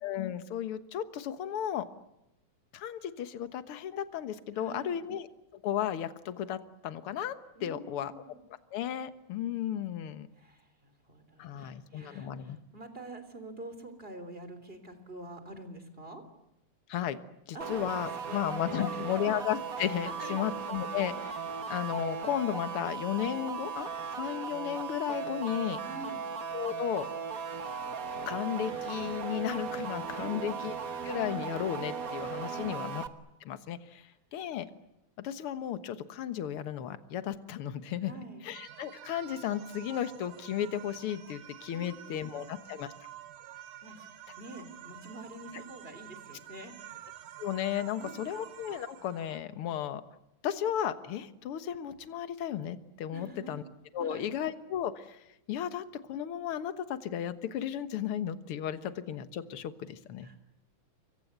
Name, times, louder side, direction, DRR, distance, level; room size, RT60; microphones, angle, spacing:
voice 1, 0.0-1.9 2.7-5.3 5.6-8.1 8.7-10.3 11.4-12.6 16.9-17.2 17.5-21.4 21.7-25.8 26.5-27.1 28.3-30.7 31.0-33.0 33.5-34.7 35.2-38.1 38.5-42.9 47.4-50.0 50.4-53.6 53.9-60.3, left 10 dB, 55° left, 11 dB, 1.9 m, -34 dB
voice 2, 4.5-5.0 7.5-8.4 10.3-16.2 17.5-19.2 20.2-20.4 25.8-26.2 30.2-30.6 32.5-32.9 38.0-38.5 41.7-42.5 43.8-44.1 44.4-46.7 48.0-48.4 53.1-53.5 54.0-54.3 60.2-60.4, right 2 dB, 20° right, 9 dB, 3.5 m, -47 dB
sound 1, 17.6-33.1, right 6 dB, 45° right, 1.1 m, -37 dB
sound 2, 38.5-49.4, right 12 dB, 80° right, 2.9 m, -49 dB
29.5 x 23.5 x 8.1 m, 0.86 s
omnidirectional pair, 3.4 m